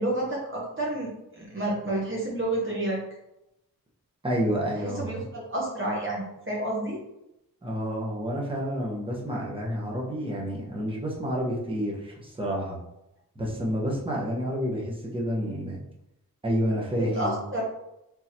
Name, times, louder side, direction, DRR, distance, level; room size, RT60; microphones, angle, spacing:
voice 1, 0.0-3.0 5.0-7.0 17.0-17.6, right 1 dB, 35° right, -4 dB, 1.1 m, -30 dB
voice 2, 4.2-5.3 7.6-12.8 13.3-15.8 16.4-17.4, equal, 15° right, -3 dB, 1.2 m, -29 dB
3.6 x 3.2 x 2.9 m, 0.88 s
cardioid pair, 45°, 37 cm